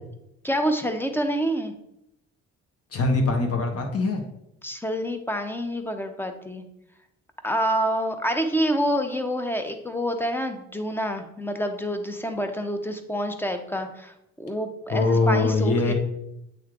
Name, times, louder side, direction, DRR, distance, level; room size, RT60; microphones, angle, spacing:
voice 1, 0.4-1.7 4.6-6.6 7.4-15.9, equal, 5° left, 7 dB, 0.7 m, -27 dB
voice 2, 2.9-4.2 14.9-15.9, left 3 dB, 50° left, 3 dB, 1.2 m, -22 dB
8.2 x 3.2 x 3.7 m, 0.83 s
cardioid pair, 90°, 30 cm